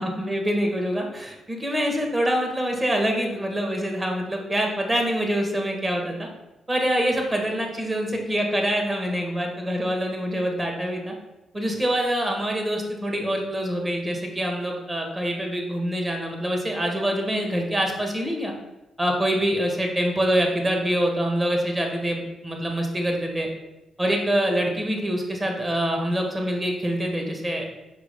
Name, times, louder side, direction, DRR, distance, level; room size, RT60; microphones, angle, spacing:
voice 1, 0.0-6.3 6.7-11.1 11.5-18.5 19.0-23.5 24.0-27.6, equal, 20° right, 2 dB, 1.6 m, -25 dB
6.0 x 4.9 x 3.6 m, 1.0 s
supercardioid pair, 55°, 0 cm